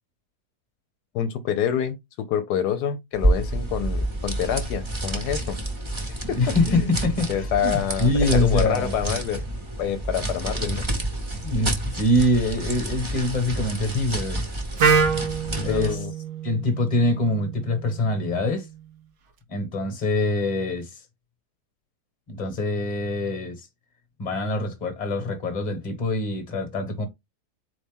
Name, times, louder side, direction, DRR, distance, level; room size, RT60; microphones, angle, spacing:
voice 1, 1.1-5.6 6.1-6.9 7.3-10.8 15.5-16.1, left 9 dB, 80° left, 1.1 m, -27 dB
sound 1, 3.1-16.0, right 1 dB, 20° right, 0.9 m, -28 dB
voice 2, 6.3-8.9 11.4-14.4 15.6-16.1 16.4-18.7 19.5-21.0 22.3-23.7 24.2-27.1, left 2 dB, 30° left, 1.2 m, -24 dB
Wind instrument woodwind instrument, 14.8-18.7, right 5 dB, 60° right, 0.8 m, -26 dB
4.2 x 3.2 x 3.5 m
omnidirectional pair, 1.7 m